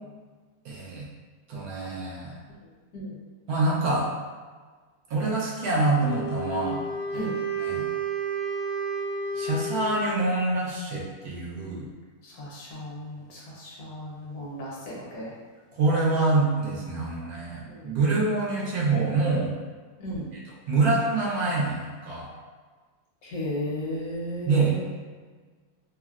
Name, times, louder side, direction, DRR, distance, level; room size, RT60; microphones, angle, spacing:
voice 1, 0.6-1.1 1.5-2.4 3.5-4.1 5.1-6.8 7.1-7.3 7.6-7.9 9.3-11.9 15.7-19.5 20.7-22.3 24.5-24.8, right 3 dB, 75° right, -5 dB, 1.2 m, -25 dB
Wind instrument woodwind instrument, 5.9-10.3, right 3 dB, 60° left, 0.6 m, -31 dB
voice 2, 12.2-15.3 17.7-18.0 20.0-20.3 23.2-24.9, left 1 dB, 75° left, -6 dB, 1.3 m, -35 dB
3.6 x 2.1 x 2.4 m, 1.5 s
omnidirectional pair, 1.6 m